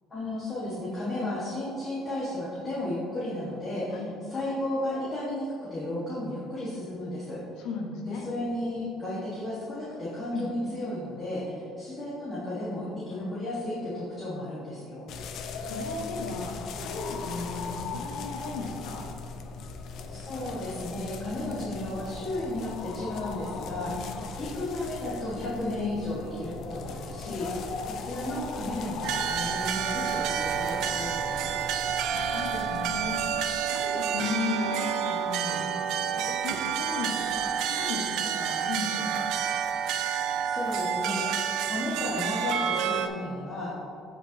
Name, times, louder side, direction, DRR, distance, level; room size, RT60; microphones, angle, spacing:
voice 1, 0.1-4.0 4.3-7.7 8.1-15.1 20.1-27.7 28.0-31.7 40.4-43.7, left 1 dB, 20° left, -8 dB, 1.6 m, -34 dB
voice 2, 7.6-8.3 10.3-10.5 13.1-13.3 15.6-19.1 23.9-24.2 27.2-27.5 32.1-33.2 33.7-35.6 36.0-39.3, left 3 dB, 80° left, 1 dB, 1.3 m, -36 dB
sound 1, 15.1-33.5, left 4 dB, 50° left, 0.6 m, -38 dB
sound 2, 29.0-43.1, right 8 dB, 65° right, 0.5 m, -29 dB
15.0 x 5.3 x 2.8 m, 2.9 s
cardioid pair, 165°, 0 cm